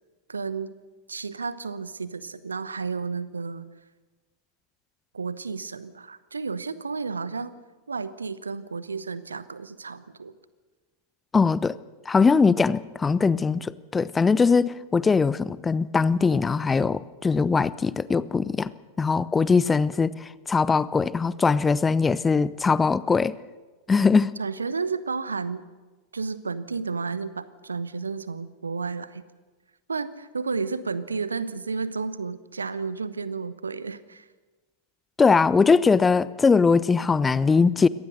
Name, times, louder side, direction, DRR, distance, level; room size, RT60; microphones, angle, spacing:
voice 1, 0.3-0.7 1.1-3.7 5.1-7.6 7.9-10.3 24.4-25.6 26.1-29.2 29.9-34.2, right 4 dB, 75° right, 16 dB, 1.0 m, -32 dB
voice 2, 11.3-11.7 12.1-18.7 19.0-23.4 23.9-24.3 35.2-37.9, left 4 dB, 15° left, 19 dB, 0.6 m, -21 dB
24.0 x 18.5 x 6.6 m, 1.3 s
figure-of-eight pair, 90°, 0 cm